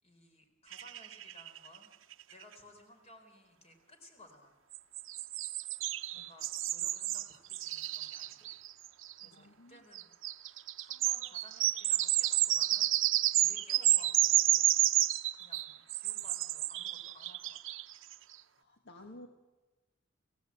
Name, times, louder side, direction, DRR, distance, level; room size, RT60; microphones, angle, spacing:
voice 1, 0.0-1.9 2.3-4.6 6.1-8.5 9.1-10.1 10.5-12.9 13.3-15.0 15.3-17.8 19.0-19.2, left 1 dB, 30° left, 5 dB, 4.3 m, -58 dB
sound 1, 0.7-1.8 2.1-2.2 2.4-2.5 4.7-9.3 9.9-18.1, right 14 dB, 70° right, 0.8 m, -30 dB
voice 2, 9.2-9.8 18.6-19.3, left 1 dB, 60° left, 3 dB, 1.8 m, -53 dB
28.5 x 17.5 x 8.8 m, 1.2 s
head